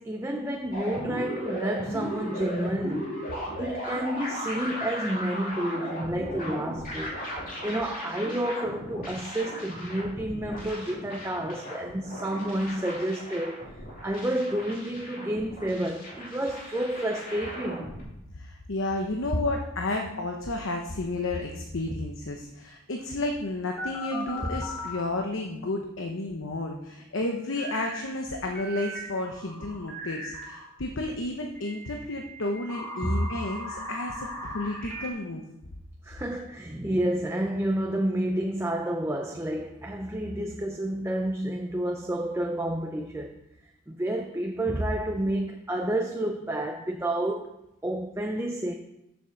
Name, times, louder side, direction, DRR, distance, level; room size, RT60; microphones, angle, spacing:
voice 1, 0.0-3.3 3.6-7.2 7.6-13.7 14.0-17.9 24.4-24.5 33.0-33.2 36.0-43.4 43.9-47.6 47.8-48.7, right 1 dB, 10° right, 0.5 m, -30 dB
sound 1, 0.7-18.0, equal, 40° left, 2.8 m, -37 dB
voice 2, 18.3-35.4, left 2 dB, 70° left, 0.9 m, -32 dB
sound 2, 23.8-25.0 27.6-28.0 28.5-30.7 31.5-35.1, equal, 5° left, 2.2 m, -38 dB
7.2 x 7.1 x 6.4 m
head